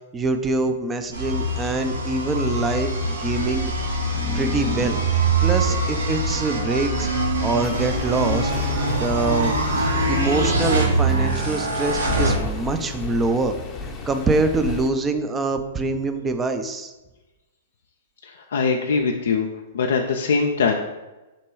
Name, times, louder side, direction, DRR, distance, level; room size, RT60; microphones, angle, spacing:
voice 1, 0.1-3.7 4.3-5.0 5.4-7.1 7.4-8.5 9.0-13.5 14.1-16.9, right 2 dB, 15° right, 7 dB, 0.4 m, -24 dB
sound 1, 1.1-12.3, right 1 dB, 80° right, 1.4 m, -24 dB
voice 2, 4.1-4.5 18.2-19.5 19.7-20.7, left 5 dB, 70° left, 2 dB, 0.3 m, -23 dB
sound 2, 4.1-5.9, right 9 dB, 45° right, 1.1 m, -23 dB
sound 3, 7.6-14.9, left 4 dB, 25° left, 0.6 m, -33 dB
4.1 x 2.2 x 4.6 m, 1.1 s
hypercardioid pair, 115°, 0 cm